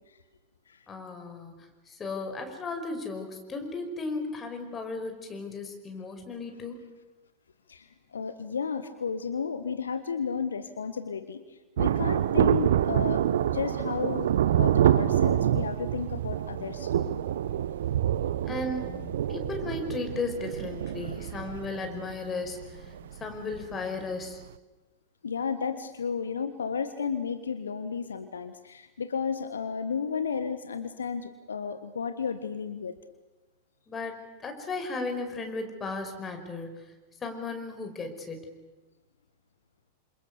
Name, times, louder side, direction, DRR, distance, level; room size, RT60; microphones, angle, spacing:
voice 1, 0.9-6.8 14.2-14.3 16.6-16.8 18.5-24.4 33.9-36.9 37.2-38.5, left 3 dB, 20° left, 5 dB, 5.5 m, -36 dB
voice 2, 7.7-17.2 21.0-21.3 25.2-32.9, left 6 dB, 70° left, 10 dB, 1.5 m, -33 dB
Thunder, 11.8-23.8 24.0-24.1, right 10 dB, 60° right, 0.8 m, -27 dB
29.0 x 27.5 x 6.9 m, 1.2 s
figure-of-eight pair, 90°, 0 cm